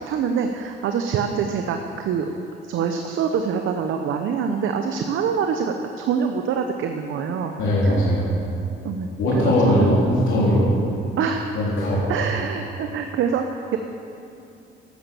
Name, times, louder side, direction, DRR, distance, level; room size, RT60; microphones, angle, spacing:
voice 1, 0.0-2.3 2.6-7.5 7.8-8.0 8.8-9.1 9.3-9.9 11.2-11.6 12.1-13.8, right 6 dB, 80° right, 5 dB, 0.8 m, -25 dB
voice 2, 7.6-8.4 9.2-10.8 11.5-12.1, left 1 dB, 75° left, -7 dB, 3.7 m, -19 dB
12.5 x 9.0 x 6.9 m, 2.6 s
cardioid pair, 90°, 20 cm